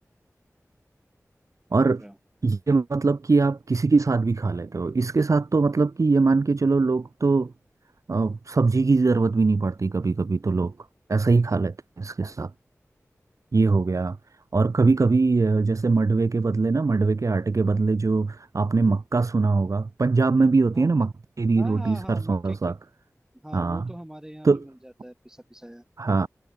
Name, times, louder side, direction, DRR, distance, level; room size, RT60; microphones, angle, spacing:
voice 1, 1.7-2.0 2.4-7.5 8.1-10.7 11.1-12.5 13.5-14.2 14.5-21.1 21.4-22.7 23.5-23.8 24.4-24.6 26.0-26.3, right 3 dB, 70° right, 1.8 m, -22 dB
voice 2, 20.7-21.0 21.6-22.8 23.3-25.8, right 1 dB, 10° right, 5.8 m, -42 dB
wide cardioid pair, 70°, 6 cm